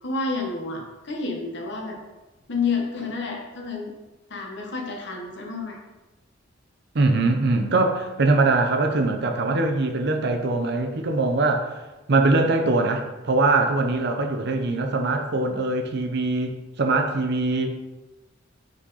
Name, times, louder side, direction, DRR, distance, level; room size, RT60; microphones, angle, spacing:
voice 1, 0.0-2.0 2.5-3.9 4.3-5.8, left 4 dB, 60° left, 1 dB, 1.1 m, -29 dB
voice 2, 6.9-11.7 12.1-17.7, right 3 dB, 55° right, 5 dB, 0.7 m, -22 dB
6.0 x 4.1 x 4.0 m, 1.1 s
head